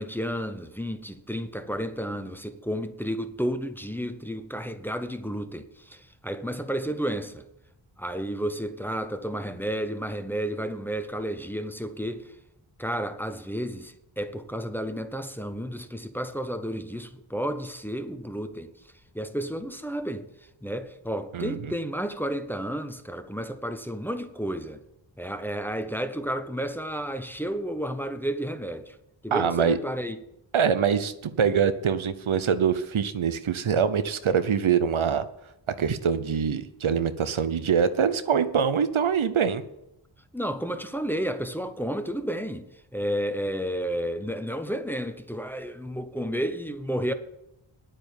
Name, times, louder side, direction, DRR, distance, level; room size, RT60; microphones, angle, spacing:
voice 1, 0.0-7.4 8.0-12.3 12.8-18.7 19.1-20.3 20.6-24.8 25.2-29.0 29.2-30.2 40.3-47.1, equal, 5° left, 0.9 m, -31 dB
voice 2, 21.3-21.7 29.3-29.8 30.5-35.2 35.8-39.6, right 7 dB, 85° right, 0.8 m, -24 dB
10.0 x 8.9 x 7.1 m
wide cardioid pair, 85°, 47 cm